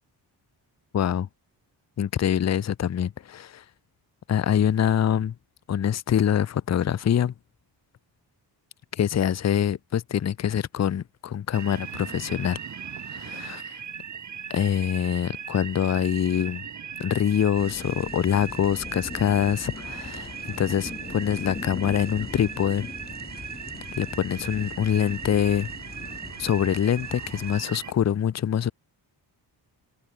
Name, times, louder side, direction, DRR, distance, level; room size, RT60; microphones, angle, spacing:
voice 1, 0.9-1.3 2.0-3.6 4.3-5.3 5.7-7.3 8.9-12.6 13.1-13.8 14.5-16.6 17.0-22.9 24.0-25.7 26.4-28.7, left 9 dB, 40° left, 0.6 m, -25 dB
sound 1, 11.5-27.9, right 7 dB, 40° right, 1.0 m, -38 dB
sound 2, 17.5-27.6, left 4 dB, 20° left, 1.2 m, -40 dB
wide cardioid pair, 145°, 43 cm